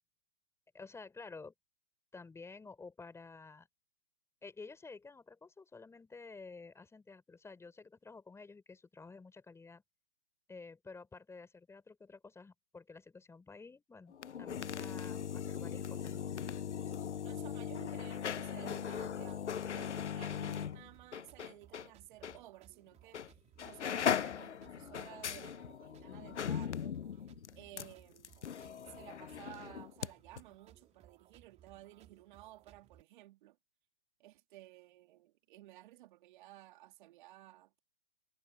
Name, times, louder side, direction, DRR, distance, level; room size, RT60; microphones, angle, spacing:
voice 1, 0.7-1.5 2.1-3.7 4.4-9.8 10.5-16.3, left 4 dB, 10° left, 3.9 m, -52 dB
sound 1, 14.1-21.9 22.2-22.4 23.1-23.3 23.6-30.1 30.4-30.5, left 8 dB, 80° left, 0.9 m, -39 dB
voice 2, 17.2-27.2 27.5-28.4 28.9-33.6 34.2-37.8, right 16 dB, 45° right, 2.8 m, -55 dB
sound 2, 18.9-33.0, right 11 dB, 20° right, 2.9 m, -64 dB
hypercardioid pair, 125°, 34 cm